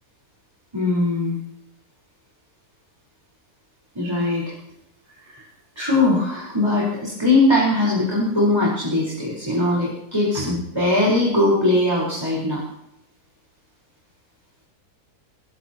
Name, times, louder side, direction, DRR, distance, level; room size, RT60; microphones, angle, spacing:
voice 1, 0.7-1.4 3.9-4.4 5.3-5.4 5.7-12.6, left 2 dB, 15° right, -6 dB, 5.0 m, -20 dB
25.0 x 16.5 x 3.1 m, 0.83 s
omnidirectional pair, 1.7 m